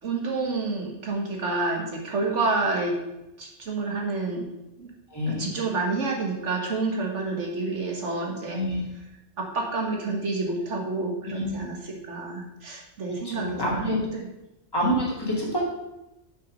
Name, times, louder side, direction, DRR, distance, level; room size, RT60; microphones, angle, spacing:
voice 1, 0.0-3.0 3.4-4.4 4.8-4.9 5.3-8.6 9.4-14.2, right 3 dB, 90° right, 0 dB, 1.9 m, -29 dB
voice 2, 5.1-5.5 8.5-8.8 11.2-11.5 13.0-14.0 14.7-15.6, equal, 20° left, -5 dB, 2.5 m, -27 dB
6.9 x 6.1 x 5.3 m, 0.93 s
omnidirectional pair, 1.2 m